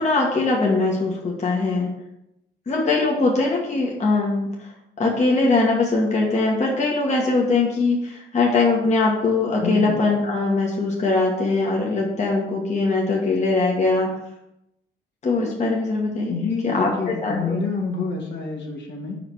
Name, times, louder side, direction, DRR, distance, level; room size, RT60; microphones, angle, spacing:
voice 1, 0.0-1.9 2.7-4.5 5.0-14.1 15.2-16.3 16.6-17.6, left 3 dB, 35° left, -2 dB, 1.4 m, -21 dB
voice 2, 9.6-10.0 16.3-19.2, left 4 dB, 65° left, -1 dB, 1.9 m, -27 dB
5.0 x 4.8 x 6.1 m, 0.87 s
cardioid pair, 90°, 20 cm